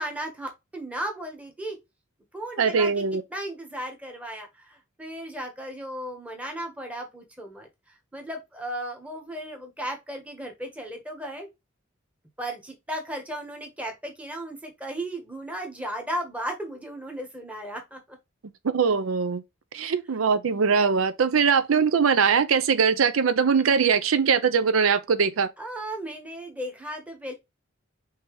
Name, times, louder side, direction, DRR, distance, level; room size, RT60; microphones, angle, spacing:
voice 1, 0.0-1.8 2.3-3.0 3.3-7.7 8.1-11.5 12.4-18.2 25.6-27.3, right 1 dB, 5° right, 1.1 m, -35 dB
voice 2, 2.6-3.2 18.7-19.4 19.7-25.5, right 6 dB, 90° right, 0.5 m, -21 dB
5.5 x 2.8 x 3.1 m
head